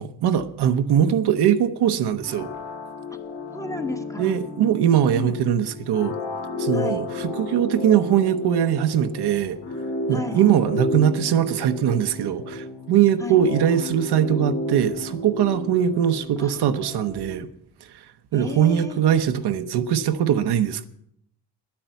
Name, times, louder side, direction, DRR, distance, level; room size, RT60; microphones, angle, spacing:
voice 1, 0.0-2.5 4.2-6.2 6.6-9.6 10.1-17.5 18.3-20.8, right 9 dB, 65° right, 1.0 m, -21 dB
sound 1, 2.2-16.8, left 2 dB, 70° left, 3.6 m, -32 dB
voice 2, 3.5-4.4 5.1-5.4 6.7-7.0 10.1-10.4 13.2-13.4 16.4-17.5 18.3-19.0, left 1 dB, 10° left, 1.0 m, -34 dB
10.5 x 8.8 x 9.1 m
cardioid pair, 155°, 42 cm